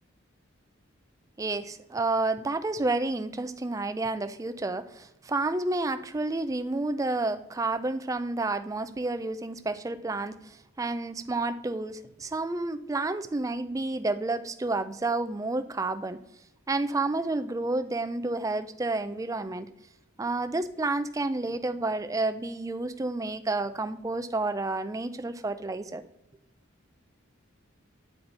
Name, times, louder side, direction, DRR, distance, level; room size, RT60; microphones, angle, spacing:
voice 1, 1.4-16.2 16.7-19.7 20.2-26.0, right 2 dB, 15° right, 10 dB, 0.3 m, -30 dB
9.3 x 4.5 x 4.0 m, 0.89 s
head